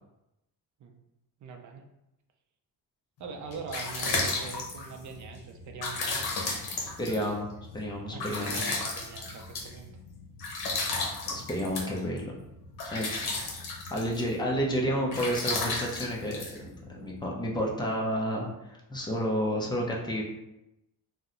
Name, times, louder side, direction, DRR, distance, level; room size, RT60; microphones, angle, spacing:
voice 1, 1.4-1.8 3.2-6.3 8.1-9.9 13.2-13.4, right 5 dB, 50° right, 4 dB, 0.5 m, -42 dB
sound 1, 3.3-17.2, left 3 dB, 75° left, 0.8 m, -34 dB
voice 2, 7.0-8.6 11.3-12.3 12.8-13.3 13.9-20.2, equal, 10° left, -2 dB, 0.5 m, -31 dB
2.7 x 2.1 x 3.7 m, 0.91 s
cardioid pair, 140°, 38 cm